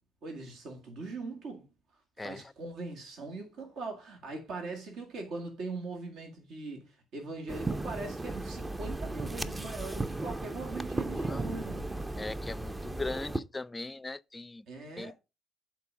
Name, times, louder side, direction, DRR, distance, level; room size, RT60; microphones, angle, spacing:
voice 1, 0.2-1.7 2.2-11.9 14.7-15.1, right 3 dB, 70° right, 1.8 m, -41 dB
sound 1, 7.5-13.4, right 2 dB, 20° right, 0.6 m, -35 dB
voice 2, 11.1-11.4 12.2-14.6 15.0-15.1, left 3 dB, 20° left, 0.4 m, -39 dB
8.3 x 3.9 x 4.9 m
hypercardioid pair, 55°, 0 cm